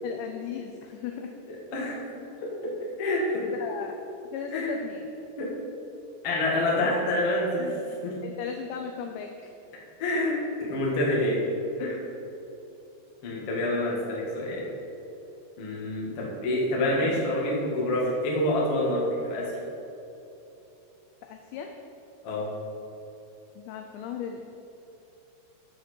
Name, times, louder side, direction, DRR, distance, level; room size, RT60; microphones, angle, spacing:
voice 1, 0.0-1.4 3.4-3.9 4.3-5.1 8.2-9.3 21.2-21.7 23.6-24.4, left 7 dB, 90° left, 4 dB, 2.5 m, -36 dB
voice 2, 1.5-2.0 2.4-3.5 4.5-4.8 5.4-5.5 6.2-8.2 10.0-11.4 11.8-12.0 13.2-14.6 15.6-19.5 22.2-22.5, left 1 dB, 60° left, -4 dB, 1.5 m, -27 dB
13.0 x 7.7 x 4.4 m, 2.9 s
omnidirectional pair, 5.9 m